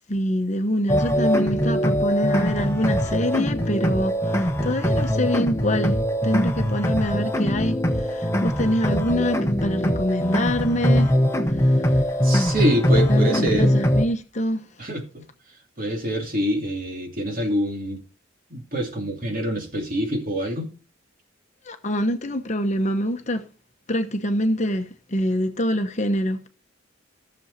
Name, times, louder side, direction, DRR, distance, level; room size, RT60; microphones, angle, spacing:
voice 1, 0.1-6.0 6.2-11.2 11.6-12.1 13.1-14.7 21.6-23.4 23.9-26.5, equal, 35° left, 1.0 m, -25 dB
sound 1, 0.9-14.1, equal, 15° left, 1.1 m, -22 dB
voice 2, 12.2-13.7 14.8-15.2 15.8-18.0 18.5-20.7, equal, 45° right, 2.9 m, -25 dB
15.5 x 7.1 x 4.1 m
head